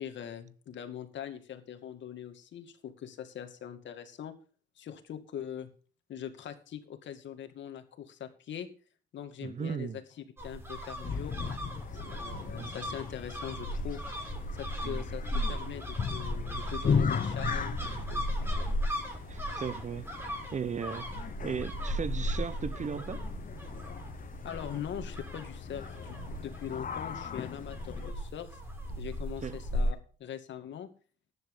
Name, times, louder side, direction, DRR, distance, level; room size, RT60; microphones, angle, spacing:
voice 1, 0.0-4.3 4.8-5.7 6.1-8.7 9.1-10.0 10.4-11.3 12.0-14.3 14.5-18.2 20.2-20.3 24.4-28.6 29.0-30.9, left 9 dB, 65° left, 2.3 m, -42 dB
voice 2, 9.4-10.0 12.5-12.7 14.8-15.0 19.3-20.1 20.5-21.1 21.4-23.2 29.4-29.6, right 6 dB, 40° right, 0.8 m, -36 dB
sound 1, 10.4-29.9, equal, 10° right, 5.8 m, -36 dB
sound 2, 11.0-28.1, left 6 dB, 45° left, 1.1 m, -38 dB
14.0 x 10.5 x 3.8 m
cardioid pair, 90°, 20 cm